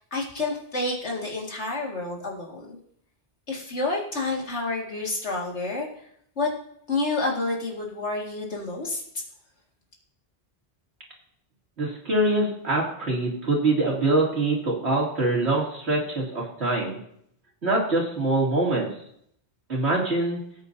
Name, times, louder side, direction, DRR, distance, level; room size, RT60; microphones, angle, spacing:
voice 1, 0.0-2.8 3.5-5.9 6.4-6.5 6.9-9.0, left 3 dB, 90° left, -1 dB, 2.4 m, -29 dB
voice 2, 11.8-17.0 17.6-18.9 19.7-20.4, right 2 dB, 75° right, -3 dB, 3.1 m, -24 dB
17.5 x 8.3 x 2.7 m, 0.69 s
omnidirectional pair, 1.1 m